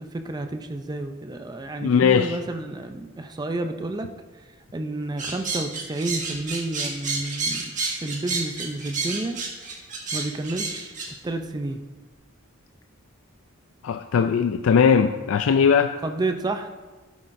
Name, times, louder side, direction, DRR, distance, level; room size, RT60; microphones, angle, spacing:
voice 1, 0.0-7.7 8.0-9.4 10.1-11.8 16.0-16.7, right 2 dB, 20° right, 7 dB, 0.4 m, -30 dB
voice 2, 1.8-2.4 13.8-15.9, left 6 dB, 75° left, 7 dB, 0.4 m, -19 dB
sound 1, 5.2-11.1, right 4 dB, 40° right, 1.5 m, -29 dB
12.5 x 8.4 x 2.6 m, 1.3 s
head